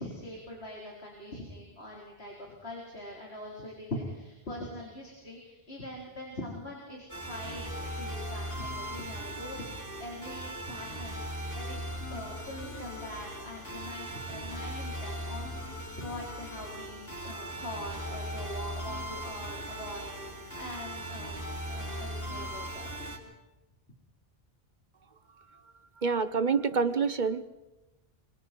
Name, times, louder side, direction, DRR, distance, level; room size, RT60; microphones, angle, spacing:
voice 1, 0.0-11.8 12.1-21.4 21.7-22.9, left 1 dB, 85° left, -3 dB, 5.0 m, -42 dB
sound 1, 7.1-23.2, equal, 15° left, 5.2 m, -39 dB
voice 2, 26.0-27.4, right 5 dB, 50° right, 12 dB, 1.1 m, -27 dB
26.5 x 26.0 x 4.7 m, 1.0 s
omnidirectional pair, 1.1 m